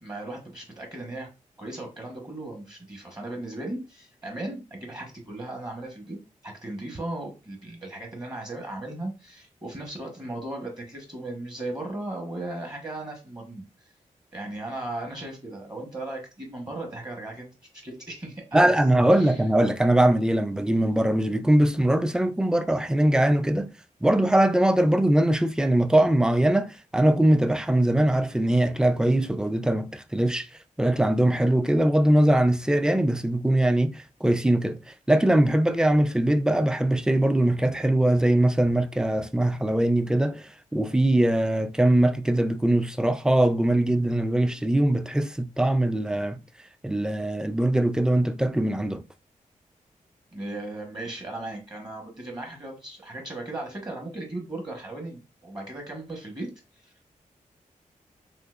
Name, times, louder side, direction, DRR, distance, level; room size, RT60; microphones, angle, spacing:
voice 1, 0.0-1.3 1.6-6.2 6.4-13.9 14.3-17.5 17.8-18.8 19.2-19.4 50.3-56.5 56.8-57.1, right 2 dB, 30° right, 1.2 m, -36 dB
voice 2, 18.5-23.7 24.0-30.5 30.8-34.8 35.1-46.4 46.8-49.0, right 1 dB, 5° right, 0.4 m, -22 dB
3.7 x 2.8 x 2.4 m
cardioid pair, 50°, 14 cm